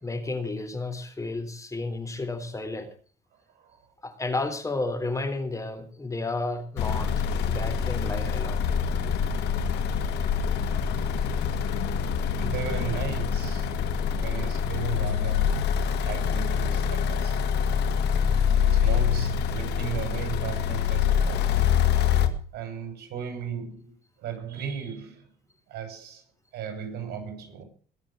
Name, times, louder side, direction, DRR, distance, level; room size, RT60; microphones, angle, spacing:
voice 1, 0.0-2.9 4.0-8.6, left 2 dB, 20° left, 3.6 m, -32 dB
voice 2, 3.5-3.9 11.4-11.8 12.1-15.7 16.0-17.5 18.6-21.8 22.5-25.3 25.7-26.2 26.5-27.6, right 7 dB, 75° right, 7.2 m, -36 dB
sound 1, 6.8-22.3, left 7 dB, 85° left, 2.2 m, -25 dB
22.0 x 7.5 x 7.8 m
cardioid pair, 110°, 17 cm